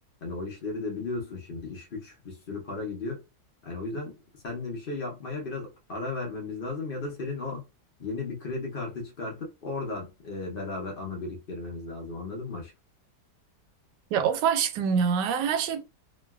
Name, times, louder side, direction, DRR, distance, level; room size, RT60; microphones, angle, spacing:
voice 1, 0.2-3.2 3.6-7.6 8.0-12.7, left 3 dB, 45° left, 0.7 m, -35 dB
voice 2, 14.1-15.9, right 7 dB, 80° right, 1.2 m, -25 dB
3.1 x 2.5 x 2.3 m
omnidirectional pair, 1.9 m